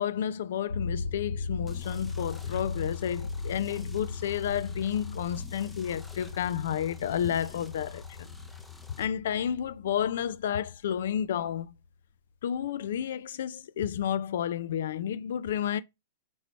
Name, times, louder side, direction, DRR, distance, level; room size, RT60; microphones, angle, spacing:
voice 1, 0.0-8.3 8.9-11.7 12.4-15.8, left 9 dB, 70° left, 0.3 m, -31 dB
sound 1, 0.7-11.5, left 4 dB, 90° left, 1.7 m, -38 dB
sound 2, 1.7-9.1, left 2 dB, 5° left, 0.5 m, -51 dB
3.1 x 2.7 x 4.2 m
hypercardioid pair, 130°, 0 cm